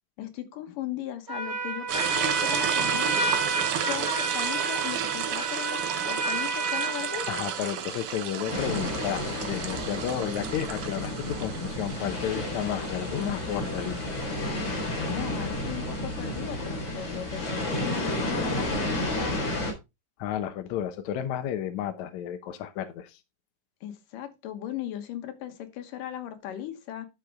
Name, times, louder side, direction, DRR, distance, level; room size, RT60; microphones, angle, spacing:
voice 1, 0.2-3.2 3.8-7.4 14.9-19.4 23.8-27.1, left 11 dB, 85° left, 2.9 m, -37 dB
Trumpet, 1.3-7.7, right 3 dB, 20° right, 3.3 m, -30 dB
sound 1, 1.9-16.3, right 9 dB, 85° right, 1.2 m, -33 dB
voice 2, 7.3-14.3 20.2-23.2, left 10 dB, 70° left, 2.1 m, -32 dB
sound 2, 8.5-19.7, left 1 dB, 50° left, 4.9 m, -31 dB
11.5 x 6.1 x 3.5 m
omnidirectional pair, 3.7 m